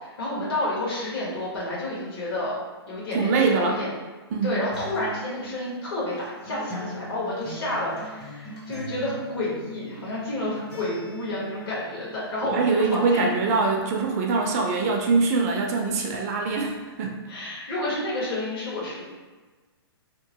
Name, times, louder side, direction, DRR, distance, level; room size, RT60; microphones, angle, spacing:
voice 1, 0.0-2.6 2.9-3.9 4.4-13.3 17.3-19.0, left 1 dB, 65° left, -6 dB, 1.4 m, -30 dB
voice 2, 3.1-3.8 4.3-4.6 12.4-17.2, right 4 dB, 35° right, 1 dB, 0.4 m, -23 dB
Acoustic guitar, 4.7-12.7, right 1 dB, 30° left, 0.7 m, -41 dB
2.9 x 2.2 x 2.8 m, 1.3 s
hypercardioid pair, 145°, 14 cm